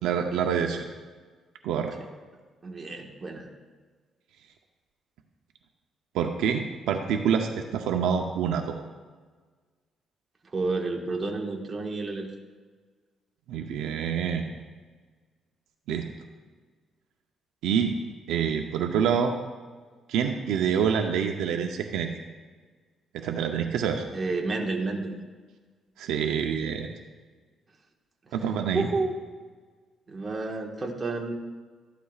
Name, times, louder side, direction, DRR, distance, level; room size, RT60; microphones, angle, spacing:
voice 1, 0.0-0.8 1.6-1.9 6.1-8.8 13.5-14.5 15.9-16.0 17.6-17.9 18.3-19.3 20.1-22.1 23.1-24.1 26.0-26.9 28.3-28.9, right 7 dB, 90° right, 4 dB, 0.7 m, -26 dB
voice 2, 2.6-3.5 10.5-12.3 24.1-25.1 28.7-29.1 30.1-31.3, right 3 dB, 30° right, 1 dB, 1.5 m, -30 dB
13.5 x 11.5 x 2.4 m, 1.4 s
cardioid pair, 90°, 0 cm